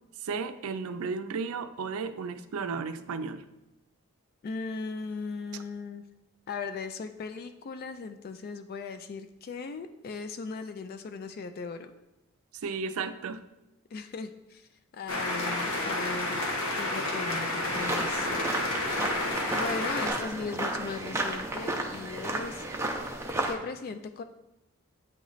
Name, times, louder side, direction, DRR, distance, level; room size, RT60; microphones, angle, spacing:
voice 1, 0.2-3.4 5.5-5.6 12.6-13.4, right 5 dB, 80° right, 11 dB, 0.4 m, -34 dB
voice 2, 4.4-6.0 6.5-11.9 13.9-14.7 14.9-18.5 19.5-22.7 23.5-24.2, left 4 dB, 45° left, 9 dB, 0.3 m, -38 dB
sound 1, 15.1-20.1, left 1 dB, 85° left, 1.2 m, -30 dB
sound 2, 17.7-23.6, right 1 dB, 10° right, 0.6 m, -33 dB
8.7 x 3.1 x 3.9 m, 0.95 s
head